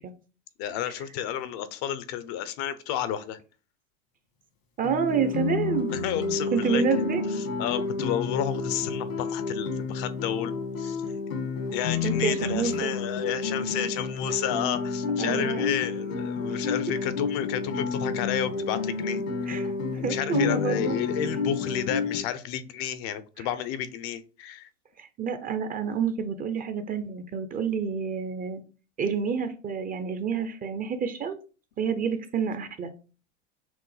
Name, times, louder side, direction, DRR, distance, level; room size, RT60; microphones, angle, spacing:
voice 1, 0.6-3.4 5.9-6.8 7.4-11.0 11.7-19.5 20.0-24.7, left 10 dB, 55° left, 13 dB, 0.6 m, -31 dB
Guitar, 4.8-22.2, left 4 dB, 85° left, 1.9 m, -30 dB
voice 2, 4.8-5.9 6.5-7.2 12.0-12.9 15.2-15.6 19.5-19.7 20.0-21.0 23.4-23.5 25.0-28.6 29.0-31.4 31.8-32.9, right 6 dB, 25° right, 10 dB, 0.5 m, -28 dB
6.0 x 2.1 x 3.2 m, 0.34 s
hypercardioid pair, 110°, 37 cm